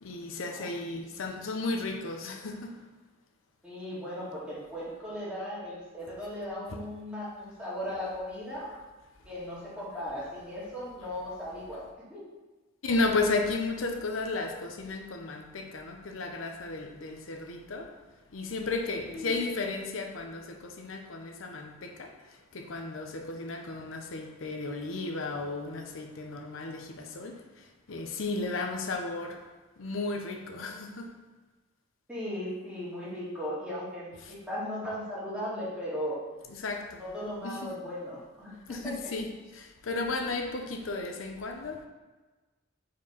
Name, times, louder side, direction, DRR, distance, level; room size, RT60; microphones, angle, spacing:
voice 1, 0.0-2.8 6.1-6.2 6.7-6.8 8.7-8.8 9.9-10.0 11.0-11.1 12.8-17.9 18.3-29.5 29.8-31.1 34.2-34.3 36.5-37.0 37.4-37.8 38.7-41.9, left 3 dB, 80° left, 4 dB, 0.7 m, -34 dB
voice 2, 3.6-8.7 9.3-12.2 19.0-19.4 32.1-36.3 37.0-39.1, equal, 5° right, -9 dB, 2.1 m, -37 dB
4.9 x 4.5 x 5.4 m, 1.2 s
head